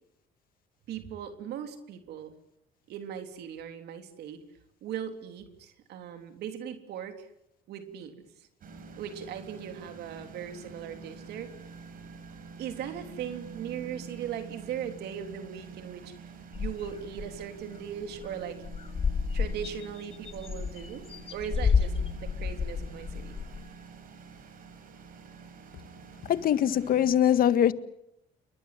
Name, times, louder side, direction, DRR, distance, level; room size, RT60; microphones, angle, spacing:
voice 1, 0.9-2.3 2.9-4.4 4.8-7.3 7.7-8.5 9.0-11.5 12.6-16.1 16.6-18.6 19.3-23.4, right 9 dB, 75° right, 3.5 m, -39 dB
sound 1, 8.6-27.2, right 5 dB, 55° right, 6.4 m, -47 dB
sound 2, 16.5-17.3 17.7-17.8 18.1-18.3 18.6-23.6, left 5 dB, 35° left, 2.7 m, -30 dB
voice 2, 26.3-27.7, left 10 dB, 60° left, 1.7 m, -22 dB
29.0 x 23.5 x 7.6 m
cardioid pair, 110°, 17 cm